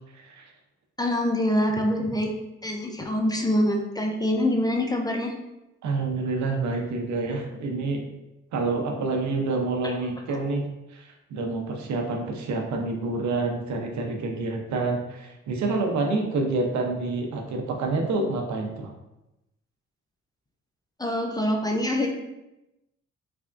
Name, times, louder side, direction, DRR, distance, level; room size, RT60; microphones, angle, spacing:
voice 1, 0.1-0.5 5.8-8.0 8.5-10.6 10.9-18.9, right 3 dB, 70° right, 2 dB, 0.7 m, -28 dB
voice 2, 1.0-2.3 2.6-5.3 9.8-9.9 10.3-10.4 21.0-22.1, left 1 dB, 15° left, 1 dB, 0.4 m, -25 dB
3.4 x 3.4 x 2.5 m, 0.93 s
cardioid pair, 90°, 30 cm